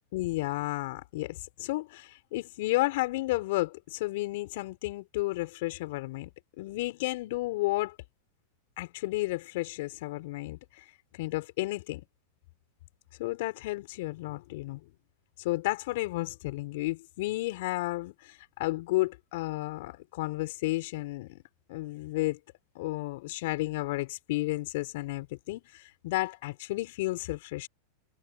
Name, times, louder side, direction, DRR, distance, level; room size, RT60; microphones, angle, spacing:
voice 1, 0.1-6.3 6.6-8.0 8.8-10.9 11.1-12.0 13.2-14.9 15.4-21.4 21.7-22.4 22.8-27.7, left 20 dB, 65° left, 5.2 m, -32 dB
hypercardioid pair, 100°, 0 cm